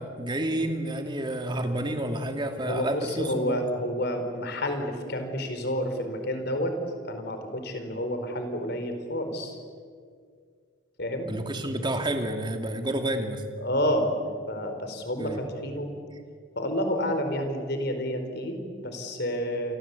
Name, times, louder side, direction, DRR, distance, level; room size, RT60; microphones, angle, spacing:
voice 1, 0.0-3.6 11.2-13.4 15.2-15.4, right 1 dB, 20° right, 5 dB, 2.5 m, -30 dB
voice 2, 2.7-6.8 7.1-9.6 11.0-11.3 13.6-14.1 14.5-15.3 15.6-15.9 16.6-19.8, equal, 50° left, 6 dB, 4.4 m, -29 dB
29.0 x 23.0 x 8.4 m, 2.1 s
head